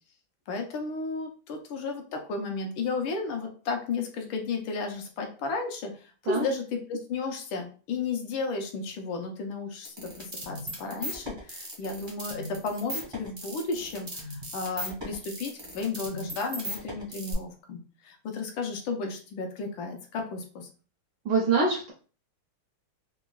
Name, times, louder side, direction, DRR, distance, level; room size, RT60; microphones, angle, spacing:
voice 1, 0.5-20.7, left 4 dB, 75° left, 3 dB, 1.3 m, -33 dB
sound 1, 9.8-17.3, equal, 30° right, 0.4 m, -38 dB
voice 2, 21.2-21.9, right 4 dB, 75° right, -1 dB, 0.9 m, -24 dB
3.8 x 2.1 x 2.3 m, 0.38 s
omnidirectional pair, 2.3 m